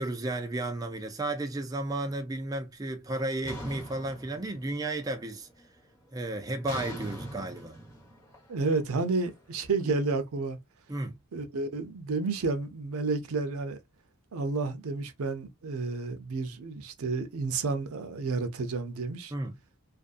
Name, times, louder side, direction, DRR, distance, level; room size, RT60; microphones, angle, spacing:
voice 1, 0.0-5.5 6.1-7.8 10.9-11.2 19.3-19.6, right 2 dB, 15° right, 0.5 m, -33 dB
sound 1, 3.4-5.0 5.3-5.8 6.6-9.7, equal, 15° left, 1.3 m, -42 dB
voice 2, 8.5-10.6 11.3-13.8 14.3-19.3, right 3 dB, 85° right, 0.5 m, -31 dB
2.5 x 2.3 x 2.4 m
head